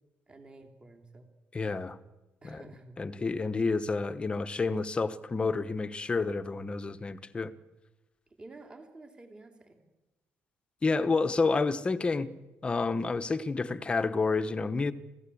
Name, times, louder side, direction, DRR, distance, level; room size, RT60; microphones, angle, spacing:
voice 1, 0.3-1.3 2.4-3.3 8.4-9.8, right 2 dB, 20° right, 5 dB, 3.2 m, -51 dB
voice 2, 1.5-2.0 2.4-2.6 3.0-7.5 10.8-12.3 12.6-14.9, left 4 dB, 20° left, 12 dB, 1.1 m, -29 dB
27.5 x 16.5 x 8.6 m, 1.1 s
cardioid pair, 145°, 5 cm